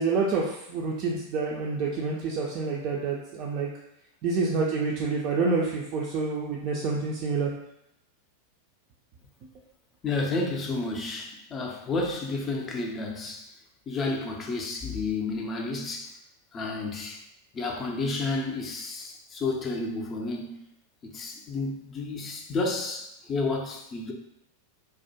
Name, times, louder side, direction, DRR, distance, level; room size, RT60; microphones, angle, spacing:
voice 1, 0.0-3.7 4.2-7.5, right 4 dB, 40° right, -3 dB, 0.3 m, -28 dB
voice 2, 10.0-13.5 13.9-16.2 16.5-17.2 17.5-20.6 21.0-24.1, left 3 dB, 25° left, 2 dB, 0.4 m, -31 dB
2.3 x 2.1 x 2.7 m, 0.78 s
figure-of-eight pair, 90°, 0 cm